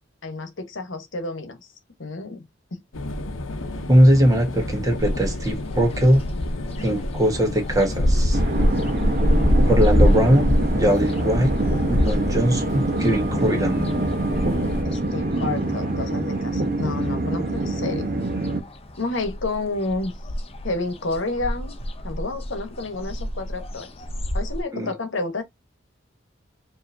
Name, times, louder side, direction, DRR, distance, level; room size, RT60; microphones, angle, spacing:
voice 1, 0.2-1.7 2.0-2.4 2.7-2.8 14.8-18.1 19.0-20.1 20.6-21.7 22.0-23.9 24.3-25.4, left 2 dB, 70° left, 1.1 m, -30 dB
sound 1, 2.9-14.8, left 2 dB, 85° left, 0.8 m, -32 dB
voice 2, 3.9-6.2 6.8-8.4 9.7-11.5 11.9-13.8 24.7-24.9, equal, 20° right, 1.3 m, -20 dB
sound 2, 5.0-16.6 16.9-18.2 18.4-24.6, equal, 30° left, 0.6 m, -25 dB
sound 3, 8.3-18.6, right 2 dB, 45° right, 1.0 m, -25 dB
4.9 x 2.8 x 2.6 m
head